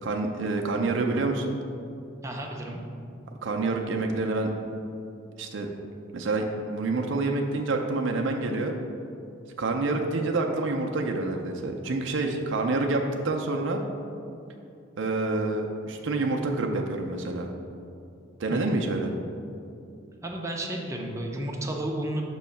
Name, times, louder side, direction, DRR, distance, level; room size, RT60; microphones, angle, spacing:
voice 1, 0.0-1.6 3.4-4.5 5.4-5.7 6.1-8.7 9.6-13.8 15.0-17.5 18.4-19.1, right 3 dB, 60° right, 2 dB, 0.5 m, -27 dB
voice 2, 2.2-2.8 18.5-18.8 20.2-22.2, right 1 dB, 15° right, 0 dB, 0.5 m, -32 dB
6.2 x 3.0 x 5.6 m, 2.6 s
head